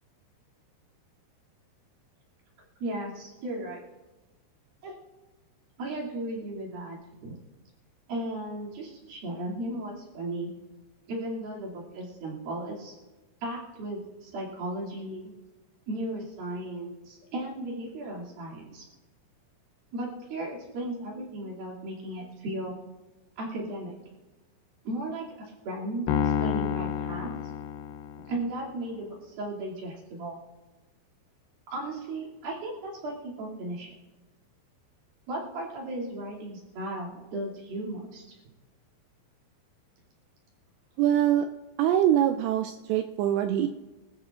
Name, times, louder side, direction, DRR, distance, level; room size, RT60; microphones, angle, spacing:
voice 1, 2.8-3.8 4.8-4.9 5.8-7.4 8.1-10.5 11.1-13.0 13.4-15.3 15.9-18.8 19.9-22.8 23.4-23.9 24.8-27.3 28.2-30.4 31.7-33.9 35.3-38.2, right 1 dB, 55° right, -4 dB, 4.1 m, -36 dB
Piano, 26.1-28.5, left 9 dB, 75° left, 2.6 m, -29 dB
voice 2, 41.0-41.5 41.8-43.7, right 11 dB, 85° right, 6 dB, 2.5 m, -23 dB
25.0 x 13.5 x 2.5 m, 1.2 s
omnidirectional pair, 5.5 m